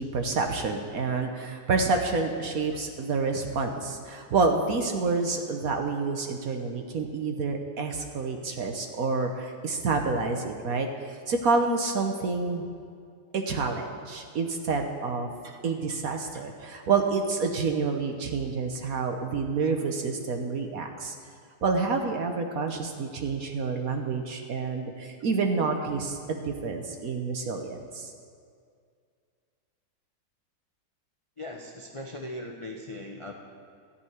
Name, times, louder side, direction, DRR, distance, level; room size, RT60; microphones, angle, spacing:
voice 1, 0.0-10.9 11.3-12.7 13.3-15.3 15.6-21.1 21.6-28.1, right 4 dB, 55° right, 4 dB, 1.2 m, -28 dB
voice 2, 31.4-33.3, left 1 dB, 45° left, 0 dB, 0.4 m, -39 dB
13.5 x 5.7 x 9.4 m, 2.2 s
omnidirectional pair, 2.1 m